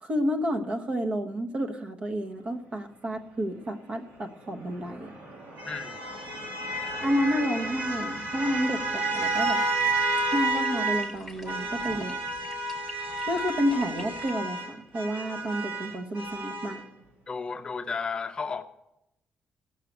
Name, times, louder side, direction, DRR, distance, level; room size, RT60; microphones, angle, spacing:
voice 1, 0.0-5.1 7.0-9.6 10.3-12.1 13.3-16.9, equal, 40° right, 5 dB, 1.2 m, -30 dB
sound 1, 4.5-11.1 11.5-16.8, right 2 dB, 70° right, 2.6 m, -31 dB
voice 2, 5.7-6.0 17.3-18.6, left 5 dB, 30° left, 8 dB, 0.6 m, -33 dB
sound 2, 9.1-14.3, left 1 dB, 5° right, 2.0 m, -47 dB
16.0 x 6.6 x 8.0 m, 0.90 s
cardioid pair, 140°, 3 cm